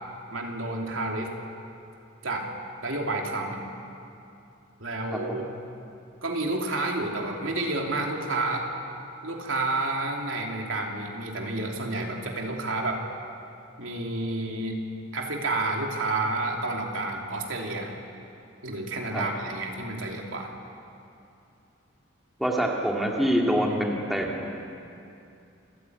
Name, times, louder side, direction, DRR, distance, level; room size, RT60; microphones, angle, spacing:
voice 1, 0.3-1.3 2.2-2.5 2.8-3.6 4.8-5.5 6.2-8.7 9.2-13.0 13.8-14.8 15.1-17.9 18.6-20.5 23.6-23.8, right 2 dB, 80° right, 1 dB, 3.1 m, -30 dB
voice 2, 22.4-24.5, equal, ahead, -2 dB, 2.4 m, -25 dB
27.5 x 14.5 x 9.5 m, 2.7 s
head